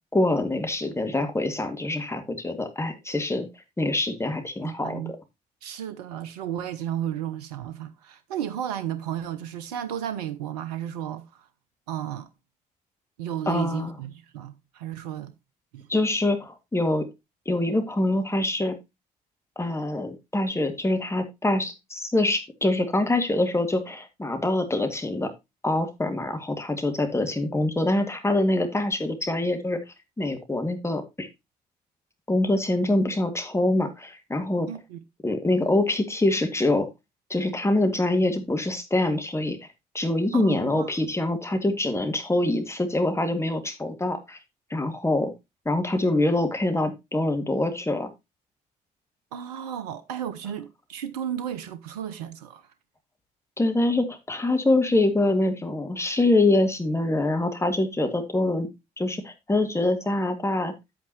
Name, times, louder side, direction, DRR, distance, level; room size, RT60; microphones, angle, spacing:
voice 1, 0.1-3.5 3.8-5.2 13.5-13.9 15.9-17.0 17.5-18.8 19.6-25.3 25.6-29.8 30.2-31.3 32.3-34.7 35.2-36.9 37.3-39.6 39.9-44.4 44.7-45.3 45.7-48.1 53.6-58.7 59.0-60.7, left 2 dB, 15° left, 2.0 m, -25 dB
voice 2, 4.6-5.1 5.6-11.5 11.9-12.3 13.2-15.3 15.7-15.9 34.7-35.0 40.3-40.9 49.3-52.7, right 10 dB, 75° right, 0.6 m, -33 dB
9.3 x 8.4 x 2.9 m
figure-of-eight pair, 40°, 21 cm